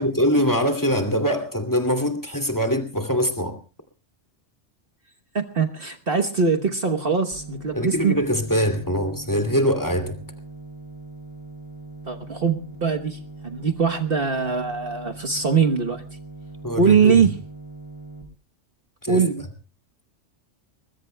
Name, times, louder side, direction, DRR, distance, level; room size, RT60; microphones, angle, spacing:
voice 1, 0.0-3.6 7.7-10.2 16.6-17.2 19.0-19.2, equal, 15° left, 6 dB, 2.5 m, -23 dB
voice 2, 5.3-8.1 12.1-16.0 16.8-17.3 19.1-19.5, right 5 dB, 50° right, 5 dB, 1.3 m, -22 dB
sound 1, 7.3-18.2, right 3 dB, 25° right, 4.4 m, -41 dB
23.0 x 21.5 x 2.2 m, 0.34 s
omnidirectional pair, 1.2 m